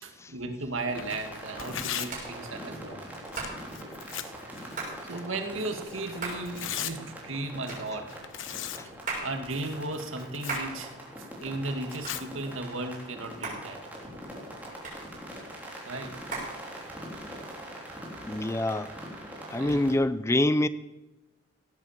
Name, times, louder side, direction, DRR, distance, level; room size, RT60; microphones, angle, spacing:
voice 1, 0.0-3.0 4.2-4.5 5.0-8.0 9.2-10.9 11.4-13.8 15.9-16.1 16.7-16.9 19.5-19.8, right 2 dB, 90° right, 2.0 m, -35 dB
Hands, 0.6-17.3, right 3 dB, 40° right, 6.6 m, -42 dB
Tearing, 0.9-14.7, left 10 dB, 75° left, 0.9 m, -42 dB
sound 1, 0.9-19.9, right 1 dB, 10° right, 3.6 m, -43 dB
voice 2, 18.3-18.9 19.5-20.7, left 1 dB, 15° left, 0.4 m, -26 dB
17.5 x 8.7 x 7.3 m
head